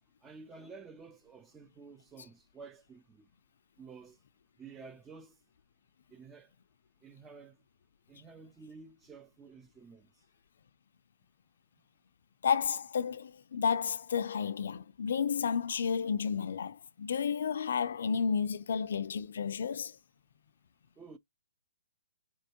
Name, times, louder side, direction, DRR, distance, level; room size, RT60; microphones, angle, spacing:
voice 1, 0.2-3.3 3.8-4.2 4.6-5.4 6.1-6.5 7.0-7.6 8.1-10.1 21.0-21.2, right 4 dB, 10° right, 0.4 m, -51 dB
voice 2, 12.4-20.0, left 6 dB, 65° left, 0.4 m, -31 dB
4.3 x 2.9 x 2.8 m
hypercardioid pair, 160°, 0 cm